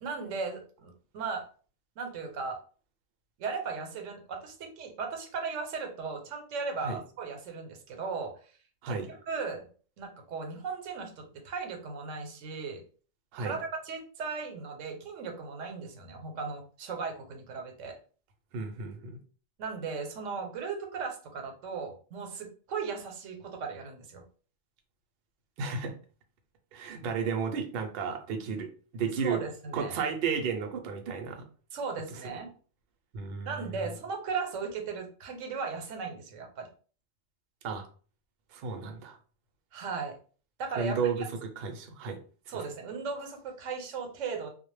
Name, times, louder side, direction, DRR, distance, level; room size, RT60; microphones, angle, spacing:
voice 1, 0.0-1.5 2.0-2.6 3.4-8.4 8.9-9.6 10.0-12.8 13.4-18.0 19.6-24.2 29.2-30.0 31.7-32.5 33.5-36.7 39.7-40.2 40.6-41.2 42.5-44.5, right 5 dB, 85° right, 4 dB, 0.9 m, -37 dB
voice 2, 18.5-19.2 25.6-25.9 26.7-29.4 29.7-31.4 33.1-33.9 37.6-37.9 38.5-39.2 40.7-42.2 42.5-42.6, right 5 dB, 60° right, 4 dB, 0.7 m, -33 dB
2.1 x 2.0 x 3.1 m, 0.40 s
omnidirectional pair, 1.3 m